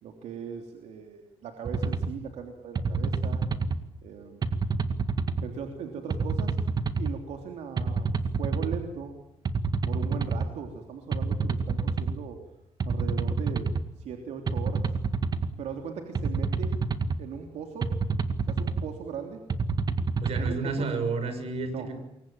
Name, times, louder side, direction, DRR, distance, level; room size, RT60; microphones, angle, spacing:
voice 1, 0.0-3.4 4.0-4.4 5.4-6.6 7.0-8.1 8.4-9.2 9.8-12.4 12.8-13.7 14.0-14.9 15.6-16.7 17.2-17.9 18.4-19.4 20.4-20.9 21.7-21.9, right 7 dB, 90° right, 4 dB, 3.2 m, -38 dB
sound 1, 1.7-2.1 2.8-3.8 4.4-5.5 6.1-7.1 7.8-8.8 9.5-10.5 11.1-12.2 12.8-13.8 14.5-15.5 16.1-17.2 17.8-18.9 19.5-20.5, right 4 dB, 40° right, 2.0 m, -28 dB
voice 2, 20.2-22.0, right 4 dB, 65° right, 8 dB, 6.8 m, -31 dB
28.0 x 23.5 x 8.8 m, 0.81 s
cardioid pair, 125°, 11 cm